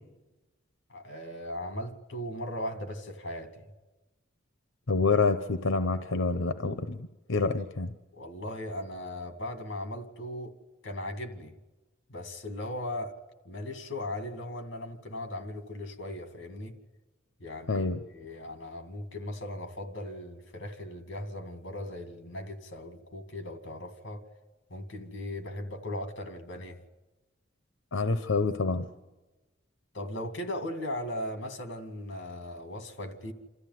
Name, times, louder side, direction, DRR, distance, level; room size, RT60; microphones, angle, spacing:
voice 1, 0.9-3.6 8.1-10.5 10.8-11.5 12.1-13.1 13.5-16.7 17.4-17.8 18.1-24.2 24.7-26.8 29.9-33.3, left 1 dB, 65° left, 2.3 m, -38 dB
voice 2, 4.9-7.9 17.7-18.0 27.9-28.9, left 3 dB, 85° left, 0.9 m, -27 dB
28.0 x 14.0 x 9.4 m
head